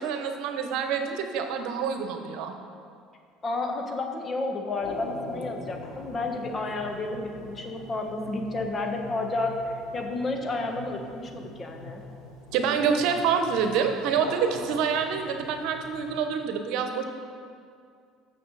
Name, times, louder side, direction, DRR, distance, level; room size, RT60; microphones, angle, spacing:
voice 1, 0.0-2.5 12.5-17.0, right 6 dB, 70° right, 6 dB, 1.0 m, -27 dB
voice 2, 3.4-12.0, left 2 dB, 30° left, 3 dB, 1.4 m, -31 dB
sound 1, 4.8-16.1, left 2 dB, 80° left, 2.5 m, -43 dB
14.0 x 6.7 x 4.1 m, 2.3 s
supercardioid pair, 90°, 0 cm